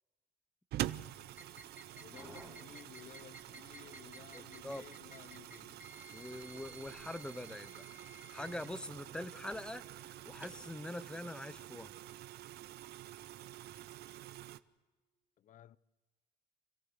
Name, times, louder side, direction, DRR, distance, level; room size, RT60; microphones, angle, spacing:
sound 1, 0.7-14.6, right 14 dB, 70° right, 0.7 m, -47 dB
sound 2, 1.3-10.7, right 1 dB, 10° right, 3.1 m, -56 dB
voice 1, 1.9-5.9 15.4-15.8, left 11 dB, 50° left, 0.6 m, -56 dB
voice 2, 4.3-4.8 6.1-7.8 8.3-11.9, left 1 dB, 5° left, 0.7 m, -44 dB
26.0 x 14.5 x 8.1 m
cardioid pair, 110°, 17 cm